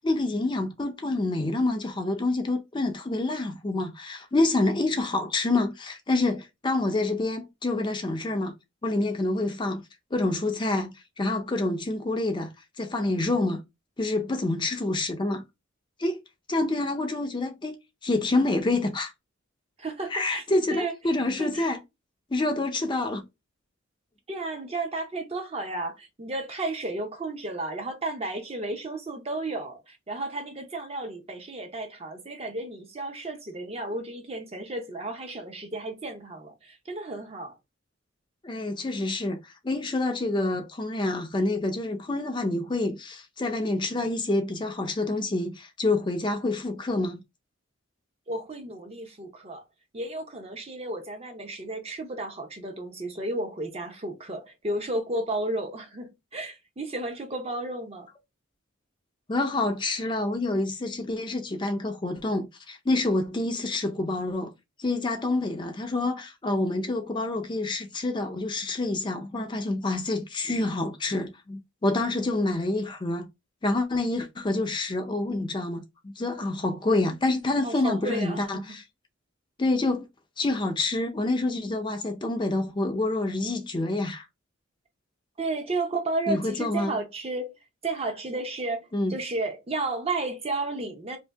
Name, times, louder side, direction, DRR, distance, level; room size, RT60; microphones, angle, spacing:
voice 1, 0.0-8.5 8.8-9.8 10.1-12.5 12.8-13.6 14.0-15.4 16.0-16.2 16.5-17.8 18.0-19.1 20.1-21.8 22.3-23.2 38.4-47.2 59.3-64.5 64.8-73.3 73.6-78.8 79.6-80.1 80.4-84.3 86.3-86.9 88.9-89.1, left 2 dB, 25° left, 0.5 m, -27 dB
voice 2, 19.8-20.4 20.7-20.9 21.4-21.7 24.3-37.5 48.3-49.6 49.9-58.1 77.6-78.7 85.4-87.5 87.8-91.2, right 2 dB, 30° right, 0.7 m, -33 dB
2.7 x 2.7 x 3.3 m
head